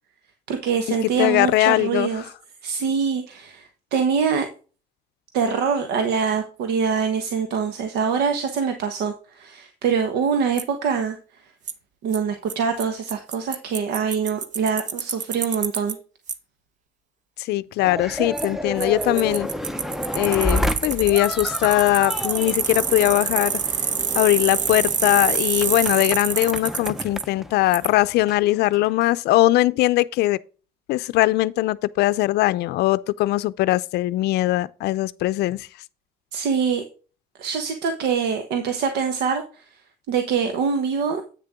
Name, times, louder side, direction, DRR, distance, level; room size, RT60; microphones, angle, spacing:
voice 1, 0.5-2.2 2.6-4.5 5.3-11.2 12.0-16.0 36.3-36.8 37.4-39.6 40.1-41.2, right 6 dB, 85° right, 1.3 m, -24 dB
voice 2, 1.2-2.1 17.4-19.5 20.1-23.6 24.1-30.4 30.9-35.7, left 17 dB, 80° left, 0.5 m, -20 dB
Bicycle, 10.6-10.7 11.7-11.8 12.1-12.2 12.5-12.6 12.8-12.9 13.1-15.9 16.3-16.4 18.4-18.5 18.8-27.2 27.7-27.9, right 6 dB, 50° right, 1.0 m, -26 dB
sound 1, 17.8-29.1, equal, ahead, 0.6 m, -30 dB
8.9 x 6.7 x 3.6 m
cardioid pair, 110°, 17 cm